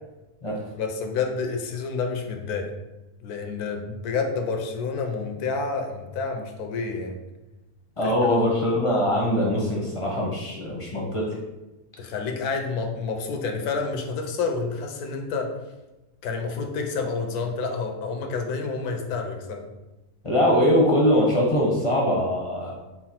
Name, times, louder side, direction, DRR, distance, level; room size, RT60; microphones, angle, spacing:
voice 1, 0.8-2.7 3.2-7.2 8.0-8.4 12.0-15.5 16.2-19.6, left 4 dB, 90° left, 4 dB, 1.1 m, -29 dB
voice 2, 8.0-11.4 20.2-22.8, equal, 35° left, -2 dB, 0.5 m, -22 dB
4.8 x 2.1 x 4.3 m, 1.1 s
omnidirectional pair, 1.6 m